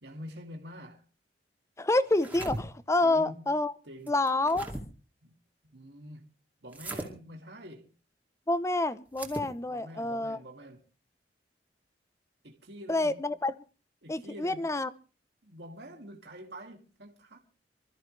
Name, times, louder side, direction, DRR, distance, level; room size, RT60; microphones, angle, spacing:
voice 1, 0.0-1.0 3.0-3.5 3.8-4.1 5.2-5.4 5.7-6.3 6.6-7.9 9.7-10.8 12.4-13.3 14.0-14.7 15.4-17.4, equal, 70° right, 2.3 m, -46 dB
voice 2, 1.8-3.7 4.1-4.7 8.5-10.4 12.9-13.5 14.1-14.9, left 2 dB, 15° left, 0.7 m, -28 dB
sound 1, 2.0-2.6 4.1-4.8 6.7-7.1 9.1-9.5, right 1 dB, 10° right, 2.4 m, -38 dB
25.5 x 13.5 x 3.3 m
head